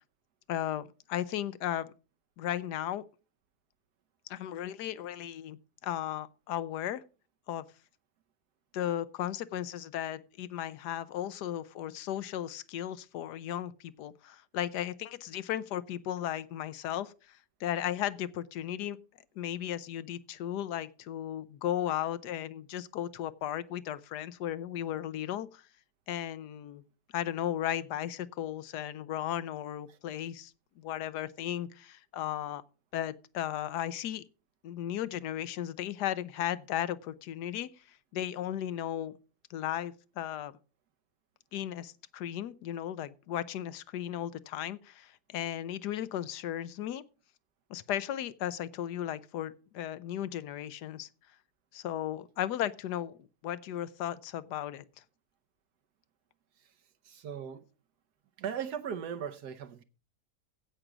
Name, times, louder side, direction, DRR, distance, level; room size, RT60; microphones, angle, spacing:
voice 1, 0.5-1.9 2.4-3.0 4.3-7.0 7.5-7.6 8.7-19.0 19.4-25.7 26.1-26.8 27.1-32.6 32.9-34.2 34.6-39.2 39.5-40.5 41.5-47.0 47.7-51.1 51.7-54.8, left 11 dB, 80° left, 1.3 m, -35 dB
voice 2, 57.0-57.6 58.4-59.8, right 8 dB, 75° right, 1.4 m, -38 dB
15.5 x 6.0 x 5.0 m
omnidirectional pair, 1.8 m